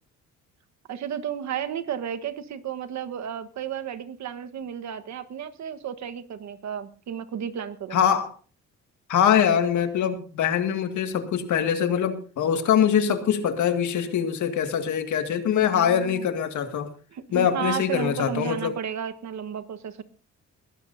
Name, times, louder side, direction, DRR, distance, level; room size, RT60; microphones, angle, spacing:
voice 1, 0.9-8.0 15.8-16.3 17.1-20.0, right 8 dB, 65° right, 9 dB, 1.3 m, -33 dB
voice 2, 7.9-8.3 9.1-16.9 17.3-18.7, left 8 dB, 75° left, 7 dB, 2.0 m, -23 dB
21.0 x 15.0 x 2.7 m, 0.40 s
cardioid pair, 90°, 30 cm